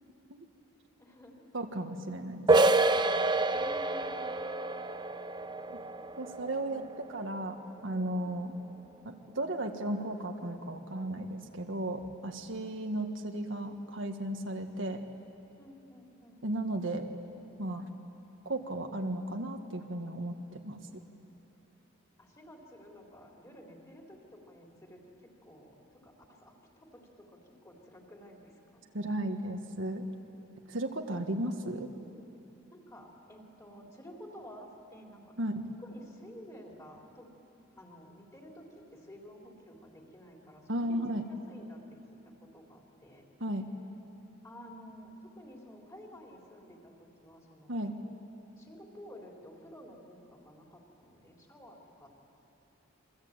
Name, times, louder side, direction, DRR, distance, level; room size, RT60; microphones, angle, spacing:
voice 1, 1.0-1.5 3.5-4.3 5.4-6.2 6.6-6.9 8.2-8.6 12.6-12.9 15.6-16.5 22.2-28.8 32.7-35.4 35.8-37.3 37.7-41.0 41.3-43.2 44.4-47.8 48.6-52.1, equal, 15° left, -1 dB, 3.7 m, -52 dB
voice 2, 1.5-2.9 5.7-5.8 6.2-7.6 7.8-8.5 9.1-15.0 16.4-17.0 17.6-17.9 18.5-20.8 28.9-30.1 30.7-31.9 35.4-35.7 40.7-41.2 43.4-43.7 47.7-48.0, right 1 dB, 65° right, 4 dB, 1.7 m, -35 dB
sound 1, 2.5-8.0, right 2 dB, 20° right, 0.7 m, -28 dB
28.0 x 23.0 x 8.9 m, 2.8 s
head